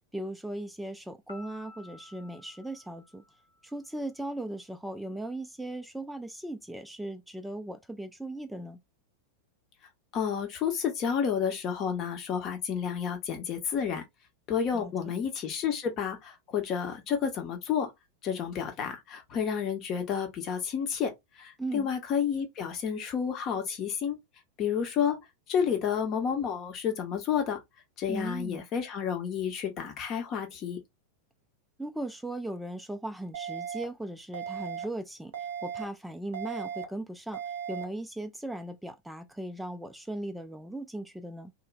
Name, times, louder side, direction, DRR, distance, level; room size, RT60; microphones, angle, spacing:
voice 1, 0.1-3.2 3.6-8.8 14.7-14.9 21.6-21.9 28.1-28.6 31.8-37.4 37.7-41.5, right 1 dB, 5° right, 0.3 m, -38 dB
Piano, 1.3-3.9, left 2 dB, 85° left, 1.8 m, -53 dB
voice 2, 10.1-14.0 14.5-17.9 18.2-24.2 24.6-25.2 25.5-27.6 28.0-30.8, left 7 dB, 35° left, 0.8 m, -30 dB
sound 1, 33.3-33.8 34.3-34.8 35.3-35.8 36.3-36.8 37.3-37.8, right 8 dB, 55° right, 0.6 m, -36 dB
3.0 x 2.3 x 2.2 m
figure-of-eight pair, 90°, 0 cm